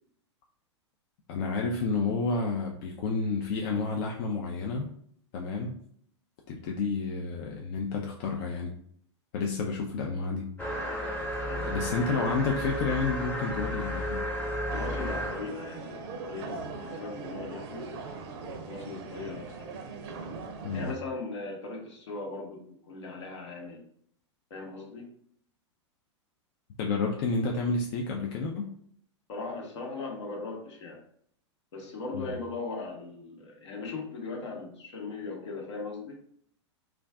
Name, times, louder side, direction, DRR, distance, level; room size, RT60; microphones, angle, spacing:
voice 1, 1.3-4.9 5.3-5.8 6.5-8.7 9.3-10.5 11.7-14.3 20.6-20.9 26.8-28.7 32.1-32.3, left 4 dB, 50° left, 0 dB, 0.4 m, -30 dB
sound 1, 10.6-15.5, equal, 10° left, 0.7 m, -33 dB
voice 2, 11.4-11.9 14.7-17.9 18.6-19.7 20.7-23.8 24.5-25.1 29.3-31.0 31.7-36.2, left 3 dB, 70° left, 1 dB, 0.9 m, -39 dB
sound 2, 14.7-21.0, right 4 dB, 55° right, 0.5 m, -40 dB
2.4 x 2.3 x 3.4 m, 0.65 s
hypercardioid pair, 105°, 16 cm